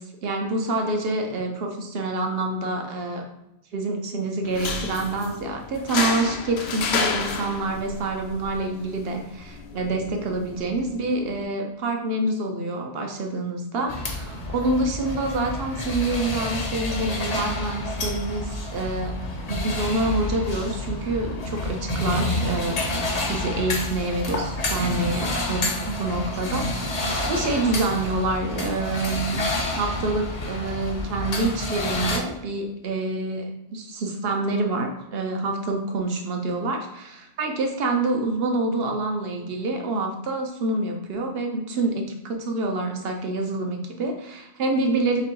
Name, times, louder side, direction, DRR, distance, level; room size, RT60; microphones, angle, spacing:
voice 1, 0.0-3.2 3.7-19.1 19.5-29.4 29.8-45.2, right 2 dB, 65° right, 3 dB, 0.9 m, -27 dB
sound 1, 4.4-11.4, left 5 dB, 75° left, 0.8 m, -31 dB
sound 2, 13.9-32.2, left 1 dB, 45° left, 0.7 m, -29 dB
3.3 x 3.0 x 4.6 m, 0.90 s
omnidirectional pair, 1.1 m